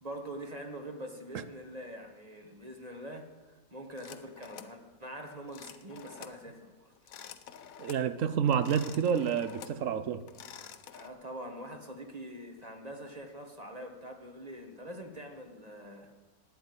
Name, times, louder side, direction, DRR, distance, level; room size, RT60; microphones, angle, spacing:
voice 1, 0.0-3.3 3.7-6.9 10.9-16.3, right 1 dB, 25° right, 1.6 m, -44 dB
sound 1, 4.0-4.8 5.5-6.4 7.0-8.1 8.5-9.8 10.2-11.1, left 8 dB, 70° left, 1.2 m, -48 dB
voice 2, 7.8-10.2, right 7 dB, 65° right, 1.0 m, -29 dB
12.0 x 9.3 x 9.5 m
omnidirectional pair, 1.6 m